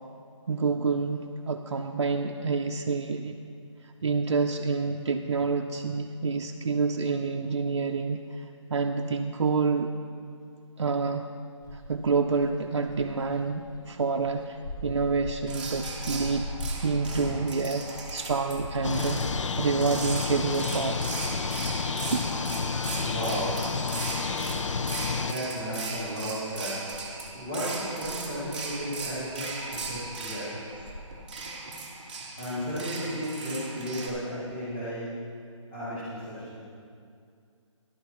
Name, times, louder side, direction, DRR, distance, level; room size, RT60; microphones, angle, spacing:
voice 1, 0.5-3.3 4.0-9.9 10.8-11.3 11.7-21.0 22.1-22.3, right 4 dB, 55° right, 3 dB, 0.5 m, -28 dB
sound 1, 11.6-23.2 23.5-24.8 25.1-31.2, left 1 dB, 40° left, 0.9 m, -42 dB
sound 2, 15.5-34.1, right 3 dB, 15° right, 0.7 m, -38 dB
sound 3, 18.8-25.3, left 5 dB, 65° left, 0.5 m, -30 dB
voice 2, 22.9-23.5 25.1-26.9 27.3-30.5 32.4-35.1 35.7-36.6, equal, 20° left, -12 dB, 2.4 m, -34 dB
13.5 x 11.5 x 3.0 m, 2.4 s
hypercardioid pair, 175°, 17 cm